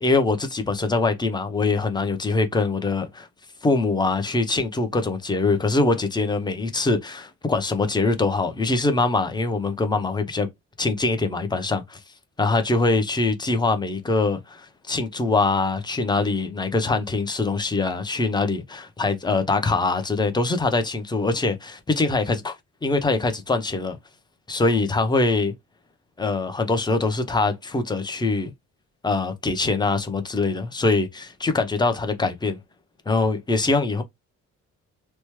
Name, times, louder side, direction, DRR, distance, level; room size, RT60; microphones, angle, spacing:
voice 1, 0.0-3.3 3.6-10.5 10.8-12.0 12.4-22.6 22.8-24.0 24.5-25.5 26.2-28.5 29.0-32.6 33.1-34.0, left 3 dB, 15° left, 0.7 m, -23 dB
3.0 x 2.1 x 3.1 m
cardioid pair, 90°, 30 cm